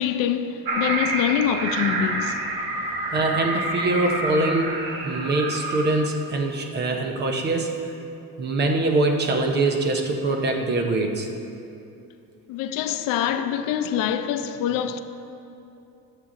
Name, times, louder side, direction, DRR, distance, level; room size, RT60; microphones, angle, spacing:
voice 1, 0.0-2.4 12.5-15.0, left 9 dB, 65° left, 0.5 m, -25 dB
sound 1, 0.7-5.9, right 2 dB, 75° right, 1.2 m, -28 dB
voice 2, 3.1-4.8 5.0-7.8 8.4-11.3, right 2 dB, 30° right, 0.6 m, -23 dB
10.5 x 7.4 x 3.7 m
cardioid pair, 175°, 35 cm